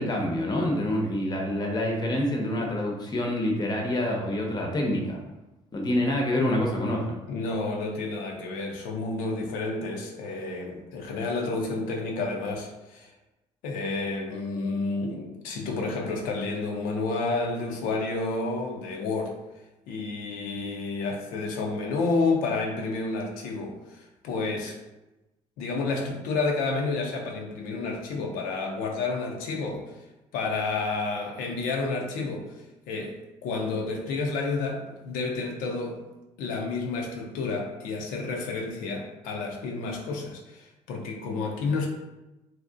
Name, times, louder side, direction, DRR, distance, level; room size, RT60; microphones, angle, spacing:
voice 1, 0.0-5.2 5.7-7.2, left 1 dB, 30° left, 0 dB, 0.6 m, -27 dB
voice 2, 7.3-13.1 13.6-19.3 19.9-24.8 25.6-30.0 30.3-36.0 36.4-41.9, left 3 dB, 75° left, 1 dB, 0.4 m, -30 dB
2.6 x 2.0 x 2.3 m, 1.0 s
supercardioid pair, 60°, 15 cm